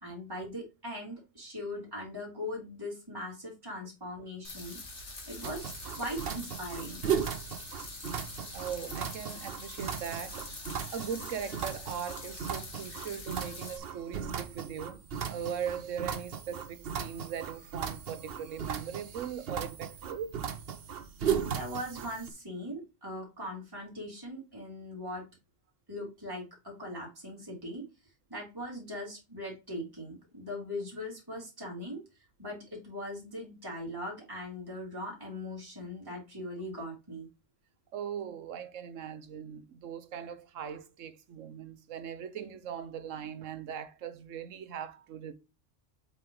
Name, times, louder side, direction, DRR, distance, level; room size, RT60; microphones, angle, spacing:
voice 1, 0.0-4.8 5.3-5.7 6.0-7.0 21.4-25.2 25.9-27.8 28.3-32.0 32.4-37.3, left 1 dB, 15° right, 3.0 m, -40 dB
sound 1, 4.4-13.8, left 2 dB, 70° left, 2.1 m, -45 dB
sound 2, 5.4-22.3, right 7 dB, 55° right, 0.9 m, -37 dB
voice 2, 8.5-10.5 10.9-15.0 15.3-20.4 37.9-45.3, right 8 dB, 85° right, 1.2 m, -39 dB
7.7 x 4.8 x 3.8 m
omnidirectional pair, 1.3 m